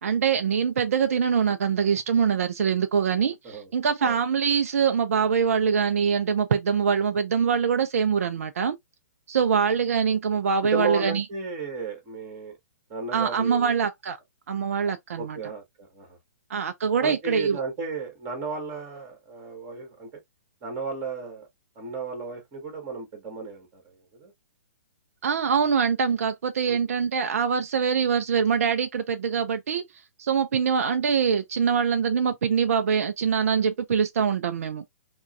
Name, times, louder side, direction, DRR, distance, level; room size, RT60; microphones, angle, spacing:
voice 1, 0.0-8.8 9.3-11.2 13.1-14.2 14.5-15.4 16.5-17.6 25.2-29.8 30.2-34.8, right 6 dB, 60° right, 0.4 m, -24 dB
voice 2, 10.6-12.5 12.9-13.7 15.2-16.2 17.0-20.1 20.6-21.5 21.8-23.8 24.1-24.3 26.6-26.8, right 4 dB, 30° right, 1.9 m, -34 dB
4.5 x 2.3 x 2.5 m
figure-of-eight pair, 120°, 8 cm